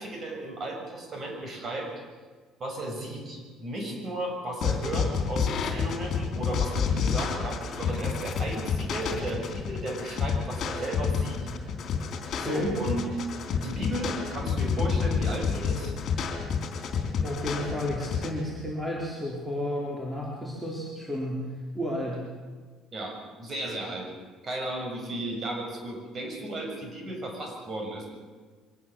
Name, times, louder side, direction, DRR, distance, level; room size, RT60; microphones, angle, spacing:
voice 1, 0.0-1.9 2.6-11.4 12.4-13.1 13.5-15.9 22.9-24.1 24.4-28.1, right 1 dB, 35° right, 2 dB, 6.7 m, -34 dB
sound 1, 4.6-18.3, left 6 dB, 45° left, 3.8 m, -29 dB
voice 2, 12.4-12.8 17.2-21.5 21.7-22.3, left 1 dB, 5° right, -3 dB, 4.0 m, -32 dB
24.0 x 18.5 x 7.6 m, 1.4 s
cardioid pair, 140°, 0 cm